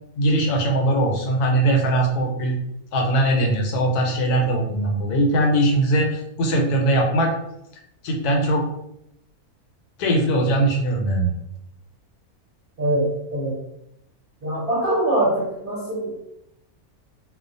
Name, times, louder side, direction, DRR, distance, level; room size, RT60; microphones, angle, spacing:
voice 1, 0.2-2.5 2.9-7.3 8.0-8.6 10.0-11.3, right 1 dB, 85° left, 2 dB, 1.1 m, -20 dB
voice 2, 12.8-13.5 14.4-16.2, right 1 dB, 45° right, -7 dB, 0.7 m, -23 dB
2.4 x 2.2 x 2.5 m, 0.81 s
omnidirectional pair, 1.6 m